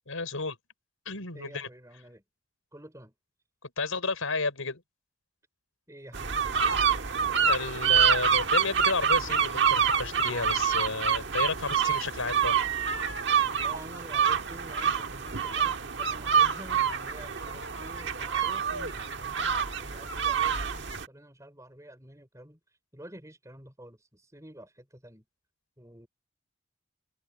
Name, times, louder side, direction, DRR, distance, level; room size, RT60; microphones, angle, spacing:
voice 1, 0.1-0.6 1.1-1.7 3.6-4.8 7.5-12.6, left 3 dB, 90° left, 5.5 m, -32 dB
voice 2, 1.3-2.2 2.7-3.1 5.9-6.4 13.5-22.6 22.9-25.2 25.8-26.1, right 1 dB, 15° right, 5.1 m, -49 dB
sound 1, 6.1-21.0, right 7 dB, 60° right, 1.5 m, -27 dB
head